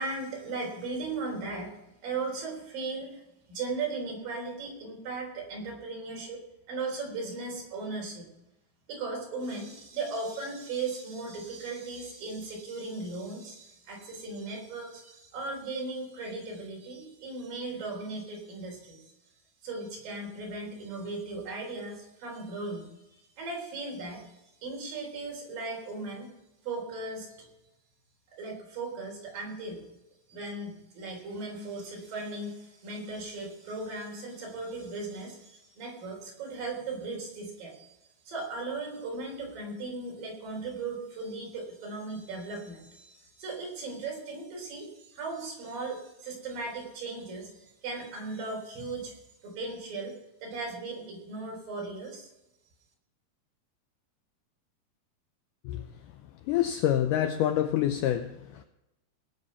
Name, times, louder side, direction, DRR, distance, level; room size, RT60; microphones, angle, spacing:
voice 1, 0.0-1.7 2.0-3.2 3.5-6.4 6.7-8.3 8.9-19.1 19.6-26.3 26.6-27.5 28.3-29.9 30.3-37.9 38.3-50.2 50.4-52.3, right 3 dB, 65° right, 5.5 m, -37 dB
voice 2, 56.5-58.6, left 11 dB, 80° left, 1.9 m, -27 dB
18.5 x 8.0 x 5.6 m
omnidirectional pair, 4.4 m